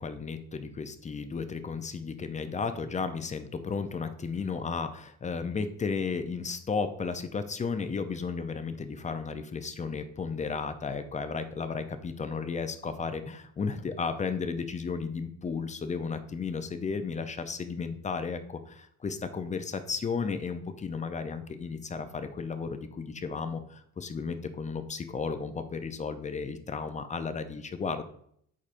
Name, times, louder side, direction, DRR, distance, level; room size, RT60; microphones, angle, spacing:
voice 1, 0.0-28.0, left 5 dB, 25° left, 9 dB, 0.5 m, -34 dB
4.8 x 4.2 x 2.5 m, 0.66 s
cardioid pair, 90°, 30 cm